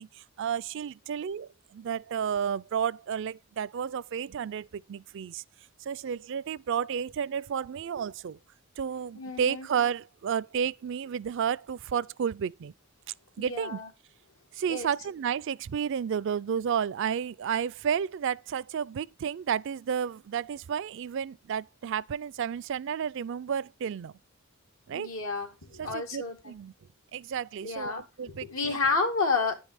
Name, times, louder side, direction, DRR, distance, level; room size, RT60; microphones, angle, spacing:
voice 1, 0.0-5.4 5.8-8.4 8.8-12.7 13.4-13.8 14.5-24.1 24.9-25.1 25.8-26.7 27.1-27.9 28.2-28.8, right 7 dB, 60° right, 0.4 m, -32 dB
voice 2, 9.2-9.7 13.4-13.9 14.7-14.9 24.9-26.5 27.6-29.5, left 4 dB, 85° left, 2.2 m, -30 dB
9.8 x 5.4 x 4.8 m
head